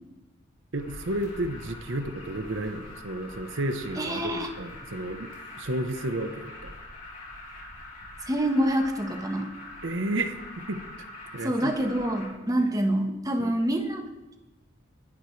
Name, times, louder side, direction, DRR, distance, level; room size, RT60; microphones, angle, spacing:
Alarm, 0.7-12.3, left 1 dB, 45° left, 3.5 m, -44 dB
voice 1, 0.7-5.3 5.6-6.7 9.8-10.8 11.3-11.7 13.4-13.5, right 1 dB, 75° right, 7 dB, 1.0 m, -32 dB
voice 2, 4.0-4.5 8.3-9.5 11.4-14.0, right 1 dB, 20° right, 4 dB, 1.2 m, -26 dB
20.0 x 11.0 x 3.3 m, 1.1 s
head